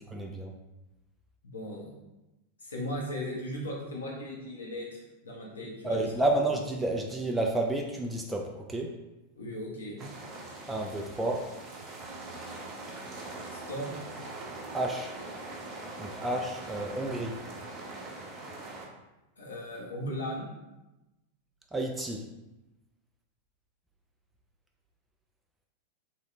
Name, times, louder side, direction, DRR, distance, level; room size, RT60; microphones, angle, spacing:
voice 1, 0.1-0.5 5.8-8.9 10.7-11.5 14.7-15.1 16.0-17.4 21.7-22.2, right 2 dB, 10° right, 1 dB, 0.3 m, -30 dB
voice 2, 1.4-1.9 2.6-6.1 9.4-10.0 13.5-13.9 19.4-20.4, equal, 70° left, -3 dB, 1.0 m, -37 dB
sound 1, 10.0-18.9, right 2 dB, 30° right, 0.8 m, -42 dB
3.6 x 3.1 x 3.2 m, 1.0 s
figure-of-eight pair, 90°, 0 cm